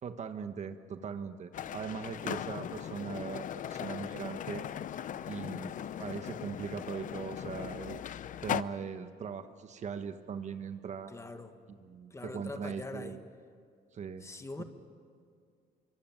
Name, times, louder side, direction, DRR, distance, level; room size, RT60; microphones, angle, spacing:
voice 1, 0.0-4.7 5.3-5.7 6.0-8.0 8.4-11.1 11.7-13.2 13.9-14.3 14.6-14.7, right 6 dB, 45° right, 1.4 m, -40 dB
sound 1, 1.5-8.6, left 10 dB, 50° left, 0.8 m, -39 dB
voice 2, 5.4-5.7 11.1-11.6 12.1-13.2 14.2-14.6, left 3 dB, 15° left, 1.7 m, -43 dB
26.0 x 24.0 x 9.1 m
cardioid pair, 110°, 17 cm